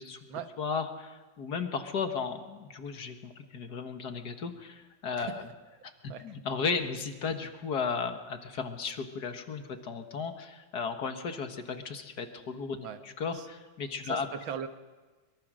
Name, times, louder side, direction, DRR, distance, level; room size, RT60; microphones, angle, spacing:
voice 1, 0.6-5.5 6.0-14.3, left 5 dB, 55° left, 7 dB, 1.9 m, -35 dB
voice 2, 14.0-14.7, right 8 dB, 90° right, 9 dB, 2.0 m, -39 dB
23.0 x 23.0 x 6.3 m, 1.3 s
omnidirectional pair, 2.1 m